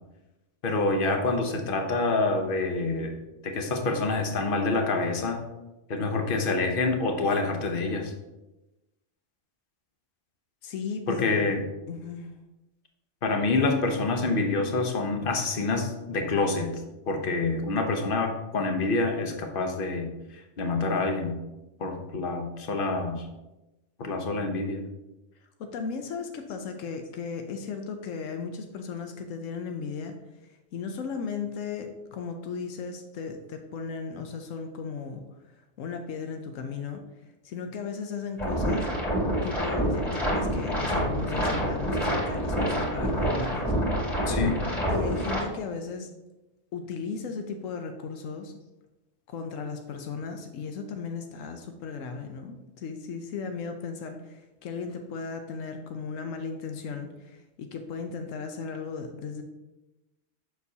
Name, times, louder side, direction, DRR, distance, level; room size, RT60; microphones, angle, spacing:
voice 1, 0.6-3.2 3.4-5.4 5.9-8.1 11.1-11.6 13.2-16.7 17.1-20.1 20.6-21.4 21.8-23.3 24.0-24.8 44.3-44.6, left 3 dB, 50° left, 4 dB, 1.0 m, -27 dB
voice 2, 10.6-11.6 11.9-12.3 25.4-30.2 30.7-37.1 37.4-38.9 39.4-44.4 44.9-46.1 46.7-48.5 49.3-59.4, left 5 dB, 90° left, 6 dB, 1.0 m, -36 dB
sound 1, 38.4-45.4, equal, ahead, 2.2 m, -27 dB
6.9 x 6.2 x 2.8 m, 1.0 s
omnidirectional pair, 1.3 m